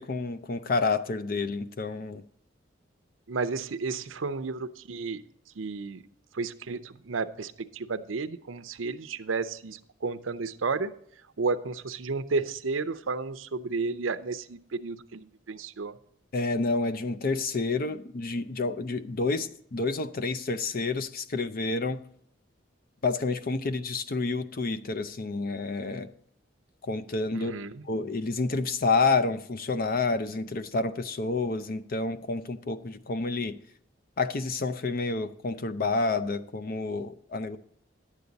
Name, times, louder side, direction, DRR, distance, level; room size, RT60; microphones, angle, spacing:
voice 1, 0.0-2.2 16.3-22.0 23.0-26.1 26.8-27.5 27.8-33.6 34.2-37.6, left 3 dB, 50° left, 0.6 m, -29 dB
voice 2, 3.3-5.2 5.6-6.0 6.3-10.9 11.4-16.0 27.3-27.8, right 4 dB, 85° right, 0.6 m, -32 dB
11.0 x 8.3 x 4.0 m
head